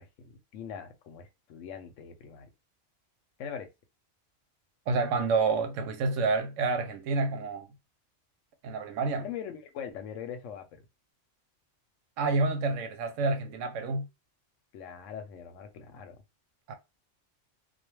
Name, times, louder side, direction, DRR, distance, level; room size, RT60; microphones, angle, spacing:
voice 1, 0.0-2.5 3.4-3.7 9.2-10.8 14.7-16.2, left 8 dB, 90° left, 1.0 m, -42 dB
voice 2, 4.9-7.7 8.6-9.3 12.2-14.1 16.7-16.8, right 3 dB, 90° right, 0.9 m, -28 dB
2.3 x 2.3 x 3.0 m
omnidirectional pair, 1.3 m